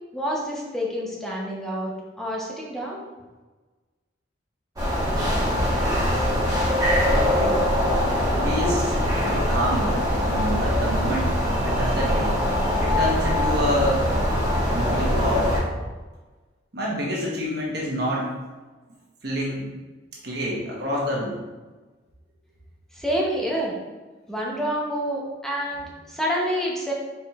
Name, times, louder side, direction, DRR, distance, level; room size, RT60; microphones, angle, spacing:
voice 1, 0.1-3.0 22.9-23.7 24.3-26.9, equal, 5° left, -4 dB, 0.8 m, -28 dB
sound 1, 4.8-15.6, equal, 20° right, 1.2 m, -22 dB
voice 2, 7.0-7.6 8.4-14.1 14.7-15.5 16.7-18.3 19.2-19.7 20.2-21.4, equal, 60° right, -4 dB, 1.1 m, -28 dB
4.8 x 4.2 x 2.4 m, 1.2 s
head